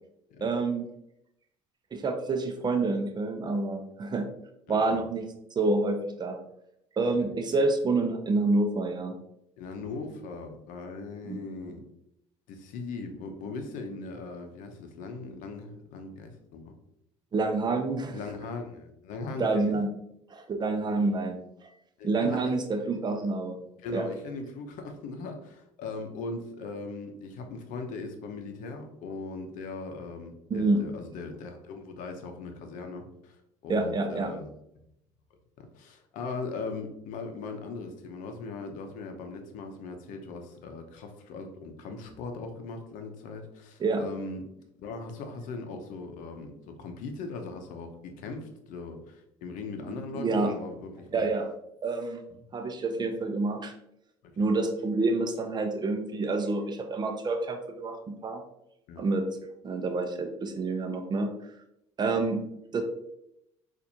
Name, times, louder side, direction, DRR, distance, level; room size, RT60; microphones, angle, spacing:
voice 1, 0.4-0.9 1.9-4.3 4.7-5.2 5.6-6.4 7.0-9.2 11.3-11.4 17.3-18.2 19.4-19.9 20.3-21.4 22.0-23.6 23.9-24.0 30.5-30.8 33.7-34.3 43.8-44.0 50.1-50.5 51.1-51.5 51.8-52.2 52.5-53.7 54.4-58.0 58.2-58.4 59.0-59.3 59.6-61.3 62.0-62.4 62.7-62.8, right 3 dB, 30° right, 6 dB, 0.6 m, -28 dB
voice 2, 4.7-5.0 7.2-7.3 9.6-11.8 12.5-16.7 18.1-19.8 22.0-22.5 23.8-34.5 35.6-44.5 44.8-51.3 52.3-52.4 54.2-54.5 58.9-59.1, left 3 dB, 70° left, 5 dB, 0.7 m, -39 dB
4.1 x 2.5 x 2.8 m, 0.80 s
hypercardioid pair, 70°, 14 cm